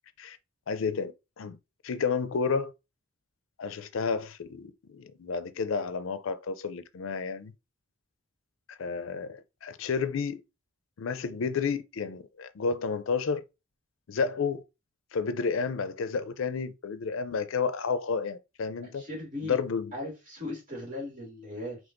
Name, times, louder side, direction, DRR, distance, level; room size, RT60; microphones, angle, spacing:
voice 1, 0.7-1.6 1.8-2.7 3.6-7.5 8.7-10.4 11.0-13.4 14.1-14.6 15.1-19.0 19.4-19.9, left 5 dB, 75° left, 0.4 m, -31 dB
voice 2, 18.9-19.5 19.9-21.8, left 1 dB, 40° right, 2.3 m, -38 dB
5.2 x 3.1 x 2.5 m
head